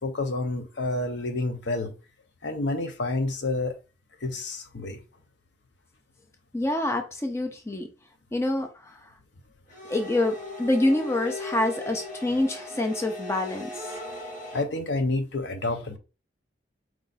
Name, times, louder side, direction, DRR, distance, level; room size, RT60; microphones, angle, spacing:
voice 1, 0.0-1.9 2.4-3.7 4.2-5.0 14.5-16.0, left 2 dB, 65° left, 0.7 m, -29 dB
voice 2, 6.5-7.9 8.3-9.0 9.9-13.9, left 1 dB, 15° left, 0.5 m, -26 dB
sound 1, 9.7-14.6, left 2 dB, 40° left, 1.4 m, -38 dB
4.6 x 2.5 x 4.0 m
head